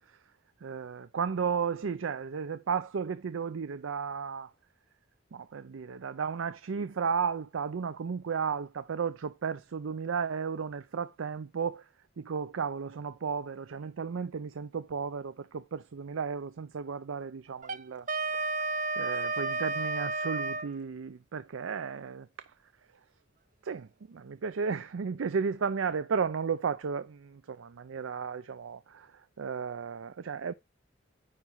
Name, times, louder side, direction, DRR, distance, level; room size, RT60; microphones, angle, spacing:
voice 1, 0.6-4.5 5.3-11.8 12.2-18.1 18.3-18.5 19.0-22.5 23.6-30.5, right 6 dB, 90° right, 0.5 m, -34 dB
Wind instrument woodwind instrument, 17.6-20.7, right 3 dB, 40° right, 0.6 m, -32 dB
9.4 x 3.2 x 5.4 m
head